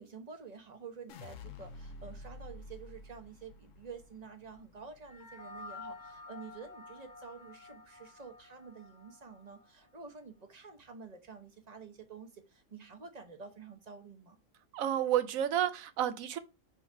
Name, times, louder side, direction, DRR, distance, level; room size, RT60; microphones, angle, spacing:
voice 1, 0.0-14.4, right 5 dB, 35° right, 1.0 m, -49 dB
sound 1, 1.1-7.3 7.6-8.2, left 2 dB, 75° left, 1.1 m, -51 dB
sound 2, 5.0-9.7, left 3 dB, 35° left, 0.8 m, -50 dB
voice 2, 14.7-16.4, right 11 dB, 85° right, 1.1 m, -30 dB
5.9 x 3.9 x 4.6 m
omnidirectional pair, 1.4 m